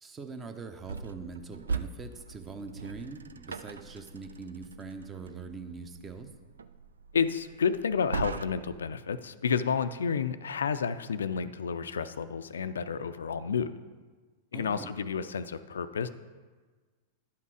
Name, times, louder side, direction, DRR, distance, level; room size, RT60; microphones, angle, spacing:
voice 1, 0.0-6.3 14.5-14.9, right 4 dB, 20° right, 7 dB, 0.9 m, -43 dB
sound 1, 0.8-8.9, right 4 dB, 85° right, 0.4 m, -40 dB
voice 2, 7.1-13.7 14.5-16.1, left 6 dB, 80° left, 12 dB, 0.4 m, -30 dB
10.5 x 5.7 x 4.8 m, 1.4 s
hypercardioid pair, 105°, 0 cm